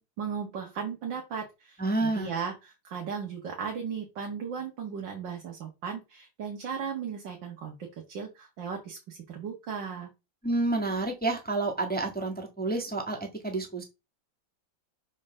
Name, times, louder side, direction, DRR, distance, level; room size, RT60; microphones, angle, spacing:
voice 1, 0.0-10.1, right 6 dB, 70° right, 1 dB, 2.2 m, -36 dB
voice 2, 1.8-2.3 10.4-13.2 13.4-13.8, right 2 dB, 5° left, 2 dB, 1.3 m, -29 dB
5.2 x 4.6 x 6.2 m, 0.25 s
omnidirectional pair, 2.1 m